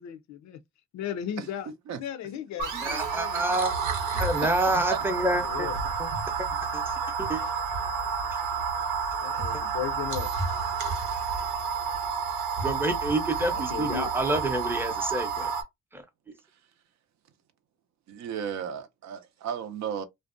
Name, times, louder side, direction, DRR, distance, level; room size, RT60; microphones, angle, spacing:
voice 1, 0.0-0.6 0.9-1.7 2.0-3.4 4.2-4.4 5.4-5.7 9.2-10.4 13.5-14.1, left 9 dB, 65° left, 0.5 m, -36 dB
sound 1, 2.6-15.6, right 5 dB, 85° right, 0.8 m, -30 dB
voice 2, 2.7-3.7 4.2-5.7 6.0-6.1 6.4-7.4 9.5-9.6 12.6-15.5 15.9-16.4, right 1 dB, 5° right, 0.6 m, -29 dB
voice 3, 4.2-5.0 18.1-20.1, right 8 dB, 65° right, 0.5 m, -35 dB
2.5 x 2.1 x 2.4 m
cardioid pair, 90°, 30 cm